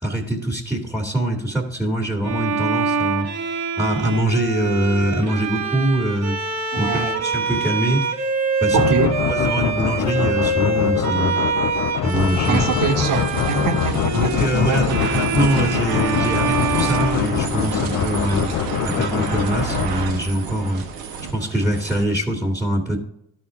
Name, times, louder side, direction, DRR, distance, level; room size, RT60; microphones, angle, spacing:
voice 1, 0.0-3.3 3.8-6.4 6.8-8.0 8.6-8.8 9.3-11.4 12.0-12.7 14.2-18.5 18.8-20.8 21.3-23.0, right 1 dB, 5° right, -1 dB, 1.9 m, -23 dB
Bowed string instrument, 2.2-18.0, right 4 dB, 50° right, 1.3 m, -25 dB
voice 2, 6.7-7.2 8.7-9.2 12.5-14.4 14.7-15.1, right 4 dB, 70° right, 4 dB, 1.5 m, -23 dB
sound 1, 8.7-20.4, left 12 dB, 60° left, 0.5 m, -24 dB
sound 2, 12.1-22.0, right 6 dB, 90° right, 1.4 m, -30 dB
12.5 x 4.4 x 3.7 m, 0.81 s
cardioid pair, 85°, 34 cm